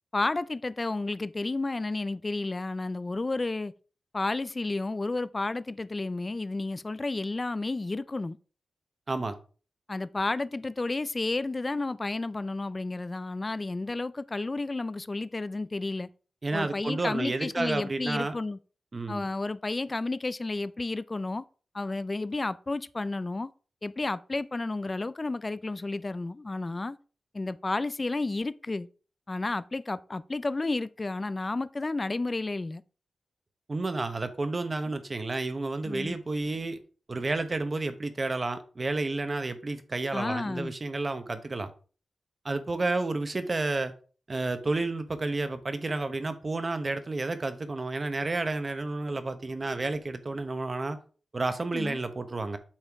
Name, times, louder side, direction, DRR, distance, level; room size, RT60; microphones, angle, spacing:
voice 1, 0.1-3.7 4.1-8.4 9.9-16.1 16.5-18.6 19.1-21.4 21.7-23.5 23.8-27.0 27.3-28.9 29.3-32.8 35.8-36.2 40.1-40.7 51.7-52.0, left 2 dB, 25° left, 0.4 m, -31 dB
voice 2, 16.4-18.3 18.9-19.2 33.7-36.8 37.1-41.7 42.4-43.9 44.3-51.0 51.3-52.6, right 3 dB, 30° right, 1.0 m, -31 dB
8.8 x 6.4 x 3.6 m
wide cardioid pair, 140°, 0 cm